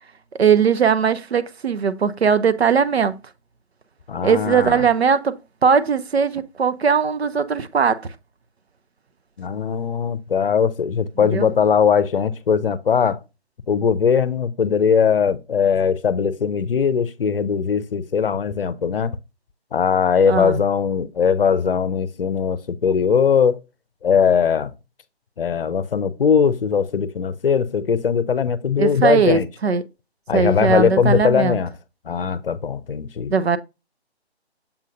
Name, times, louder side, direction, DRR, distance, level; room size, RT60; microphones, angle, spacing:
voice 1, 0.3-3.2 4.2-8.0 11.2-11.5 20.3-20.6 28.8-29.8 30.3-31.6 33.3-33.6, right 6 dB, 70° right, 0.7 m, -19 dB
voice 2, 4.1-4.9 9.4-13.2 13.7-19.2 19.7-23.6 24.0-24.7 25.4-29.5 30.3-31.7 32.1-33.3, left 6 dB, 55° left, 0.6 m, -20 dB
7.2 x 2.7 x 5.1 m
figure-of-eight pair, 155°, 33 cm